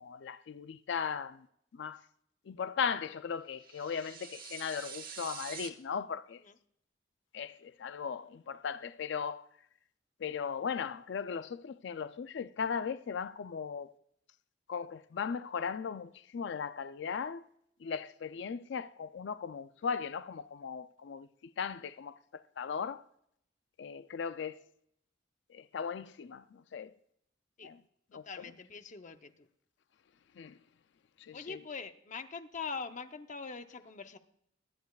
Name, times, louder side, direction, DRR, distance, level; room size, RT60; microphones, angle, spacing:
voice 1, 0.0-1.5 1.7-2.0 2.5-6.4 7.3-9.4 10.2-13.9 14.7-17.4 17.8-23.0 23.8-24.6 25.5-26.9 27.6-27.8 28.1-28.5 30.4-30.6 31.2-31.6, left 6 dB, 65° left, 0.4 m, -38 dB
sound 1, 3.6-5.7, right 7 dB, 50° right, 1.2 m, -46 dB
voice 2, 28.1-29.3 31.3-34.2, left 5 dB, 40° left, 0.8 m, -42 dB
23.0 x 10.5 x 2.4 m
head